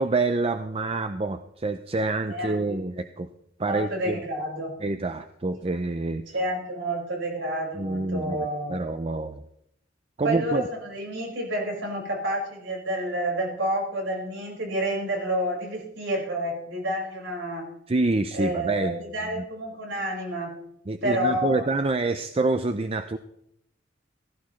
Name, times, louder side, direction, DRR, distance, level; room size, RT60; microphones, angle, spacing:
voice 1, 0.0-3.3 3.6-4.2 4.8-6.2 7.7-9.4 10.2-10.6 17.9-19.0 19.3-19.4 20.9-23.2, right 3 dB, 30° right, 9 dB, 0.5 m, -27 dB
voice 2, 2.3-2.9 3.7-4.7 6.3-8.8 10.2-17.7 18.3-20.6 21.0-21.7, right 1 dB, 85° right, -1 dB, 5.3 m, -29 dB
16.5 x 15.5 x 3.2 m, 0.76 s
head